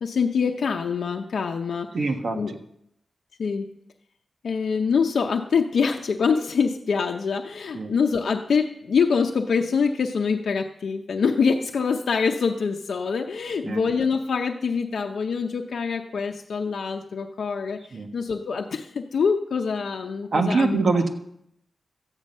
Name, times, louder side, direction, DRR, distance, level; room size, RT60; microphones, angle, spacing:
voice 1, 0.0-1.9 2.3-2.6 3.4-3.7 4.4-17.8 18.1-20.8, left 5 dB, 85° left, 3 dB, 0.7 m, -25 dB
voice 2, 1.9-2.6 7.7-7.9 13.6-13.8 17.9-18.1 20.3-21.1, right 3 dB, 55° right, 4 dB, 1.3 m, -23 dB
13.5 x 9.1 x 5.4 m, 0.77 s
wide cardioid pair, 165°, 0 cm